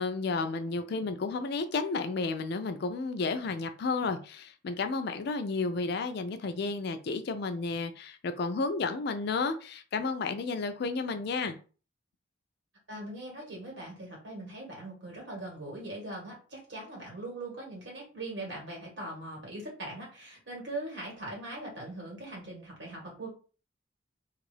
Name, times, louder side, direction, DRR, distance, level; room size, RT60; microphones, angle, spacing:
voice 1, 0.0-11.6, left 4 dB, 60° left, 0.4 m, -32 dB
voice 2, 12.9-23.3, right 2 dB, 65° right, 1.6 m, -41 dB
2.5 x 2.4 x 3.3 m
head